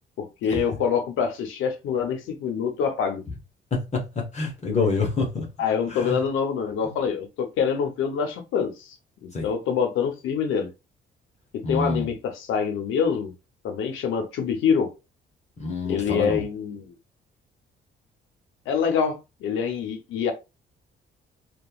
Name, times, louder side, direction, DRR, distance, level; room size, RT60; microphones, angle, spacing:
voice 1, 0.2-3.2 5.6-9.0 9.2-10.7 11.5-13.3 13.6-14.9 15.8-16.9 18.7-20.3, left 6 dB, 85° left, 0.7 m, -25 dB
voice 2, 3.7-5.5 5.9-6.2 9.3-9.5 11.6-12.1 15.6-16.4, left 4 dB, 35° left, 0.9 m, -27 dB
2.9 x 2.2 x 2.2 m
cardioid pair, 90°, 20 cm